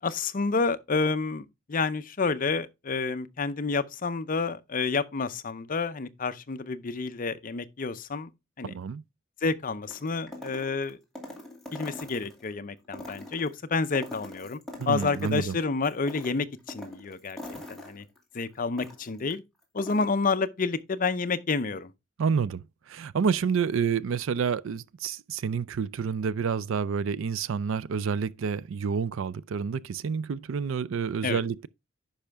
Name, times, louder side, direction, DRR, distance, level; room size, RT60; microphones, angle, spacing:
voice 1, 0.0-8.3 8.6-8.7 9.4-11.0 11.7-14.6 14.9-17.4 17.7-18.1 18.3-19.4 19.7-21.9 31.2-31.4, left 4 dB, 40° left, 0.6 m, -29 dB
voice 2, 8.6-9.0 14.8-15.4 22.2-22.6 22.9-31.7, right 6 dB, 65° right, 0.4 m, -29 dB
sound 1, 9.9-12.5 12.8-15.5 15.8-19.3 19.6-20.1, left 1 dB, ahead, 2.5 m, -42 dB
10.5 x 5.6 x 3.5 m
head